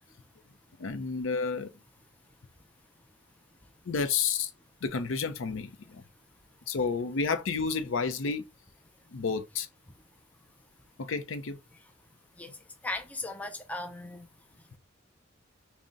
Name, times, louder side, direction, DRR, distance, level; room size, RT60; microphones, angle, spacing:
voice 1, 0.8-1.7 3.9-4.5 4.8-6.0 6.7-8.5 9.1-9.7 11.0-11.6, left 5 dB, 75° left, 0.5 m, -30 dB
voice 2, 12.8-14.3, left 2 dB, 5° left, 0.3 m, -37 dB
3.7 x 2.1 x 3.9 m
head